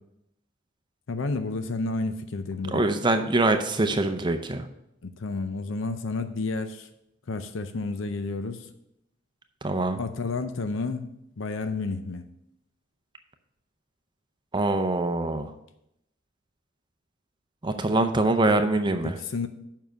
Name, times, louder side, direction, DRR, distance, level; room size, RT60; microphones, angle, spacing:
voice 1, 1.1-2.8 5.0-6.9 7.3-8.7 10.0-12.2 19.0-19.5, left 3 dB, 75° left, 9 dB, 0.6 m, -31 dB
voice 2, 2.7-4.7 9.6-10.0 14.5-15.5 17.6-19.2, right 2 dB, 25° right, 7 dB, 0.6 m, -24 dB
7.1 x 5.6 x 6.3 m, 0.81 s
head